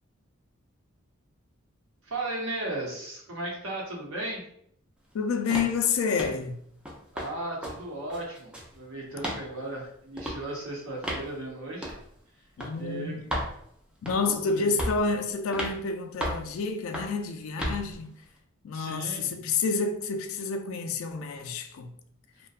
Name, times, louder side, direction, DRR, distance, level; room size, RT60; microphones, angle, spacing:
voice 1, 2.0-4.4 7.1-11.9 12.3-12.4 12.8-13.2 14.2-14.8 18.7-19.3, right 1 dB, 70° right, 0.9 m, -36 dB
voice 2, 5.1-6.6 12.6-13.3 14.0-18.1 18.6-21.9, left 4 dB, 70° left, 0.3 m, -29 dB
sound 1, 5.5-5.8 6.2-6.4 6.9-7.3 7.6-7.8 8.1-8.7 9.2-9.4 10.2-10.4 11.0-11.3 11.8-12.0 12.6-12.7 13.3-13.5 14.1-14.3 14.8-15.1 15.5-15.8 16.2-16.5 16.9-17.2 17.6-17.8, equal, 5° right, 0.4 m, -33 dB
2.6 x 2.2 x 2.3 m
head